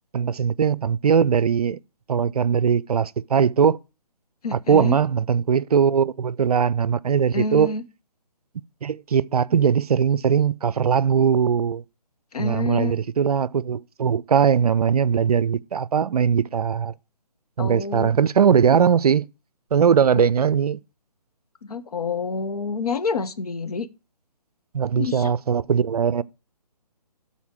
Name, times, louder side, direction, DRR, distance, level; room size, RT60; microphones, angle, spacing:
voice 1, 0.1-1.8 2.1-3.8 4.5-7.7 8.8-11.8 12.4-16.9 17.6-19.3 19.7-20.8 24.7-26.2, right 7 dB, 65° right, 0.5 m, -20 dB
voice 2, 4.4-5.0 7.3-7.8 12.3-12.9 17.6-18.1 20.2-20.3 21.6-23.9 24.9-25.3, left 4 dB, 65° left, 1.0 m, -28 dB
13.0 x 4.3 x 4.6 m
figure-of-eight pair, 145°, 21 cm